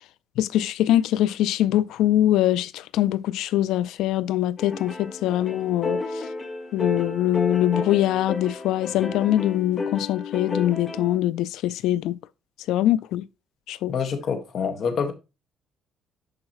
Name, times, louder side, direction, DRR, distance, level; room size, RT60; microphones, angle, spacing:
voice 1, 0.4-6.2 6.7-12.2 12.7-13.2 13.7-13.9, left 13 dB, 85° left, 0.3 m, -23 dB
sound 1, 4.6-11.2, left 3 dB, 30° left, 1.3 m, -32 dB
voice 2, 13.9-15.1, left 6 dB, 55° left, 1.6 m, -26 dB
11.0 x 4.8 x 3.0 m
cardioid pair, 125°, 0 cm